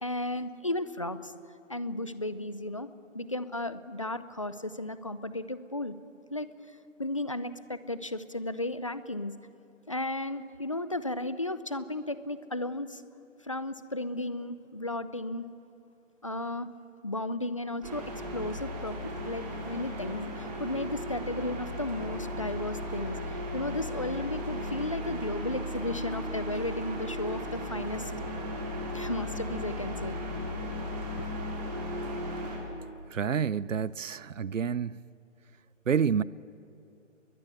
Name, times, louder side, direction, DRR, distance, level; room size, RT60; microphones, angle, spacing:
voice 1, 0.0-1.3 1.7-2.9 3.1-6.0 6.3-6.5 7.0-9.3 9.9-13.0 13.4-15.5 16.2-16.7 17.0-18.0 18.3-19.0 19.2-28.1 28.9-30.2 31.2-31.3, left 1 dB, 25° left, 0.6 m, -34 dB
sound 1, 17.8-32.6, equal, 30° right, 5.3 m, -36 dB
voice 2, 33.1-35.0 35.9-36.2, right 7 dB, 75° right, 0.8 m, -28 dB
29.5 x 21.5 x 8.2 m
figure-of-eight pair, 165°, 39 cm